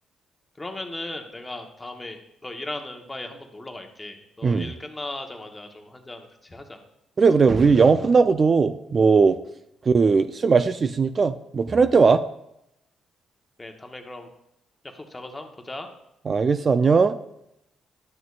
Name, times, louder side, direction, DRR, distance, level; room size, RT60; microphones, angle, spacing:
voice 1, 0.6-6.8 13.6-14.3 14.9-15.9, left 2 dB, 20° left, 4 dB, 1.0 m, -37 dB
voice 2, 7.2-9.4 9.8-12.2 16.2-17.2, right 5 dB, 40° right, 10 dB, 0.3 m, -18 dB
11.0 x 6.2 x 2.4 m, 0.82 s
cardioid pair, 90°, 0 cm